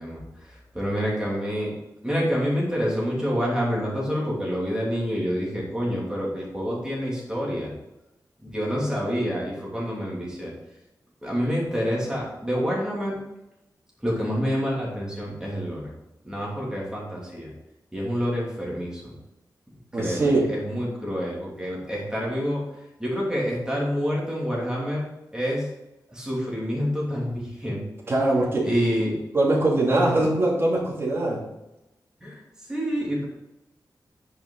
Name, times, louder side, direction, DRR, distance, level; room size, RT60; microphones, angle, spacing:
voice 1, 0.0-1.7 2.0-7.7 8.4-10.5 11.2-13.2 14.0-15.9 16.2-17.5 17.9-19.0 19.9-22.6 23.0-25.1 25.3-25.7 26.1-27.9 28.6-29.1 29.9-30.3 32.2-32.4 32.7-33.2, equal, 10° right, -5 dB, 2.9 m, -27 dB
voice 2, 19.9-20.5 28.1-28.7 29.3-31.4, right 2 dB, 35° right, -4 dB, 2.6 m, -22 dB
10.0 x 5.7 x 3.9 m, 0.94 s
wide cardioid pair, 175°, 7 cm